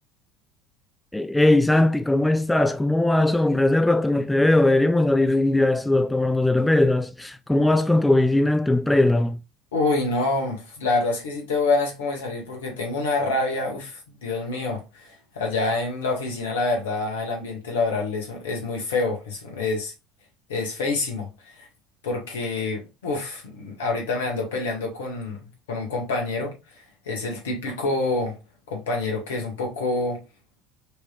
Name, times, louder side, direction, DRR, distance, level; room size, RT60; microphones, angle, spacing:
voice 1, 1.1-9.4, left 2 dB, 5° left, 0.4 m, -20 dB
voice 2, 9.7-19.9 20.5-21.7 22.0-26.6 27.1-28.4 28.7-30.2, left 3 dB, 75° left, 1.8 m, -27 dB
5.1 x 3.4 x 2.5 m
figure-of-eight pair, 65°, 0 cm